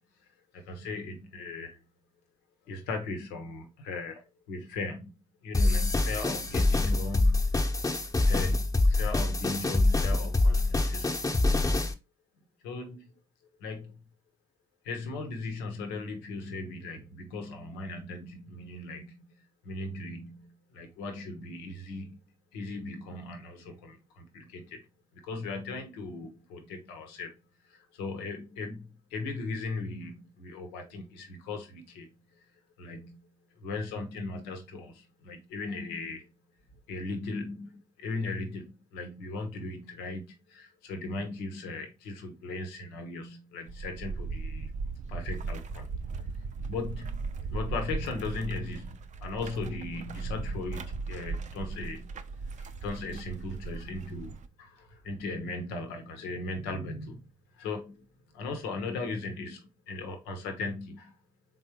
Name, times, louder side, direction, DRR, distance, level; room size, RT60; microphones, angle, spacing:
voice 1, 0.5-1.8 2.6-5.1 5.4-7.9 8.3-11.2 12.6-13.1 13.6-14.0 14.8-19.2 19.6-22.2 22.5-24.8 25.2-27.3 27.6-32.1 32.8-33.2 33.6-36.3 36.9-44.7 45.1-45.9 46.2-46.3 46.7-47.2 47.5-52.2 52.6-57.2 57.5-58.0 58.3-61.2, left 3 dB, 85° left, 0.9 m, -38 dB
sound 1, 5.5-11.9, left 2 dB, 25° left, 0.9 m, -25 dB
sound 2, 43.7-54.5, right 4 dB, 50° right, 0.5 m, -37 dB
3.9 x 3.8 x 3.0 m
hypercardioid pair, 45°, 16 cm